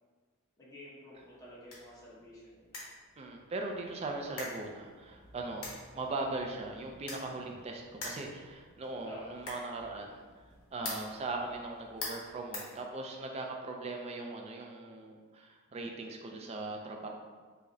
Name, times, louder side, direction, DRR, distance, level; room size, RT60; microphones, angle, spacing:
voice 1, 0.6-2.8 9.0-9.2, equal, 15° left, -8 dB, 0.9 m, -50 dB
sound 1, 1.1-13.4, left 2 dB, 70° left, 0.9 m, -47 dB
voice 2, 3.2-10.2 10.7-17.1, right 2 dB, 30° right, 2 dB, 0.3 m, -39 dB
4.7 x 2.1 x 2.6 m, 1.5 s
head